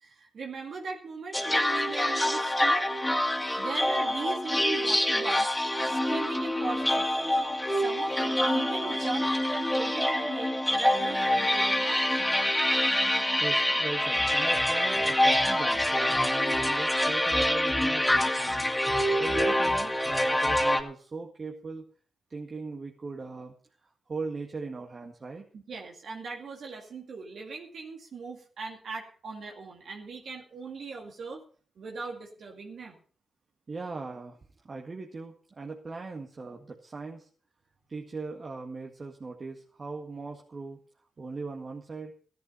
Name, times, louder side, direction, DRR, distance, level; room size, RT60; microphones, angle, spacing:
voice 1, 0.0-2.9 3.6-5.6 5.8-7.4 7.7-12.4 25.5-31.4 31.8-33.0, right 4 dB, 70° right, 0 dB, 2.3 m, -39 dB
sound 1, 1.3-20.8, left 1 dB, 10° left, 2.5 m, -26 dB
voice 2, 13.4-18.7 19.1-21.9 22.3-23.5 23.8-25.5 33.7-34.4 34.6-37.3 37.9-40.8 41.2-42.1, right 4 dB, 45° right, 1 dB, 1.9 m, -39 dB
14.0 x 10.5 x 5.6 m, 0.43 s
supercardioid pair, 45°, 0 cm